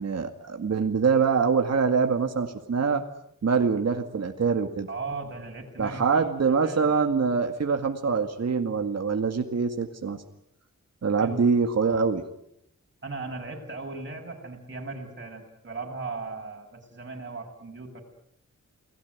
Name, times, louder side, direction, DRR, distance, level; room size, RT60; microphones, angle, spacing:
voice 1, 0.0-3.0 3.4-4.9 5.8-10.2 11.0-12.2, right 5 dB, 55° right, 5 dB, 2.1 m, -24 dB
voice 2, 4.9-6.9 11.2-11.5 13.0-18.0, right 3 dB, 40° right, 1 dB, 6.9 m, -37 dB
29.0 x 19.5 x 9.5 m, 0.76 s
wide cardioid pair, 130°, 30 cm